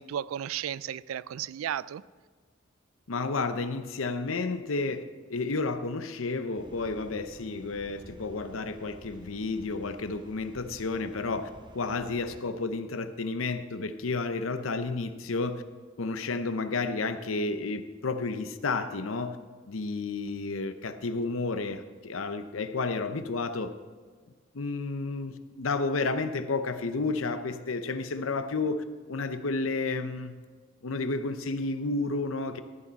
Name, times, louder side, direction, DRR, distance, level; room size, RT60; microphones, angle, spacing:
voice 1, 0.0-2.0, right 10 dB, 90° right, 0.3 m, -34 dB
voice 2, 3.1-5.0 5.3-11.5 11.7-15.6 16.0-19.4 19.7-23.7 24.5-30.3 30.8-32.6, left 3 dB, 85° left, 0.7 m, -31 dB
sound 1, 6.6-12.4, right 1 dB, 25° right, 0.6 m, -51 dB
13.5 x 8.6 x 4.1 m
head